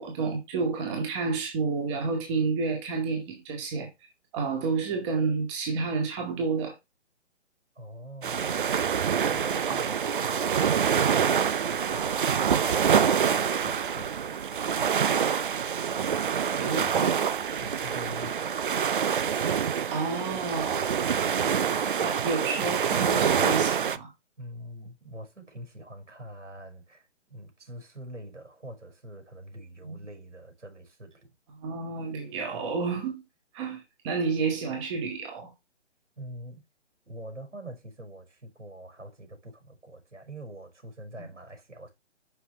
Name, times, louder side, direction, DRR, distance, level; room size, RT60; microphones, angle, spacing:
voice 1, 0.0-3.9 4.3-6.7 16.6-17.2 19.9-21.0 22.0-24.1 29.8-30.0 31.6-33.2 33.5-35.5, right 4 dB, 25° right, 2.1 m, -30 dB
voice 2, 7.8-10.6 11.2-14.4 17.6-18.5 24.4-31.3 36.2-36.6 37.1-41.9, right 1 dB, 90° right, 5.8 m, -44 dB
sound 1, 8.2-24.0, right 7 dB, 45° right, 0.6 m, -26 dB
7.9 x 5.8 x 3.3 m
figure-of-eight pair, 145°, 35 cm